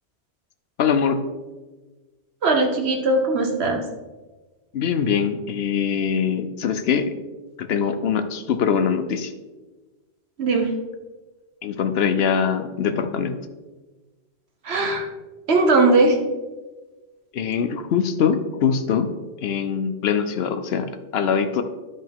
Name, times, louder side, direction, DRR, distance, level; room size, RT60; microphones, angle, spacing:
voice 1, 0.8-1.2 4.7-7.2 7.6-9.3 11.6-13.4 17.3-19.1 19.4-21.6, left 7 dB, 70° left, 9 dB, 0.9 m, -23 dB
voice 2, 2.4-3.8 10.4-10.7 14.6-15.1 15.5-16.2, right 2 dB, 70° right, 2 dB, 1.4 m, -19 dB
11.5 x 5.3 x 3.6 m, 1.2 s
omnidirectional pair, 1.1 m